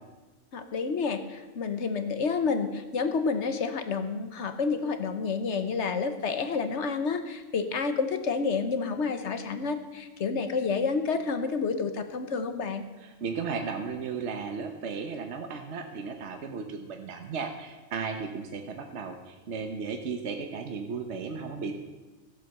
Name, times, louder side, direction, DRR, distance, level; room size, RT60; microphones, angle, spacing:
voice 1, 0.5-12.8, left 5 dB, 65° left, 8 dB, 1.3 m, -29 dB
voice 2, 13.0-21.7, right 5 dB, 65° right, 5 dB, 1.2 m, -35 dB
15.5 x 8.1 x 6.7 m, 1.2 s
omnidirectional pair, 1.3 m